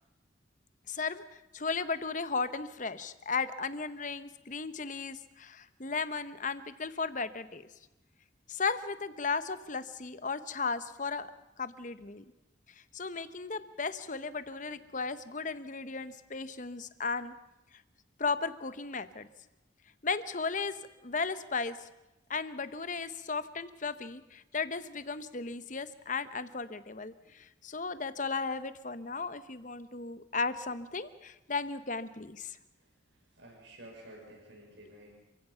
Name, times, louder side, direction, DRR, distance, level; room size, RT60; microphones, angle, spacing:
voice 1, 0.9-7.6 8.5-11.3 11.6-12.2 12.9-17.3 18.2-19.3 20.0-20.8 21.0-21.8 22.3-32.6, left 4 dB, 40° left, 13 dB, 1.0 m, -35 dB
voice 2, 32.8-35.2, right 1 dB, 75° right, 0 dB, 6.2 m, -52 dB
29.0 x 16.0 x 5.7 m, 1.0 s
head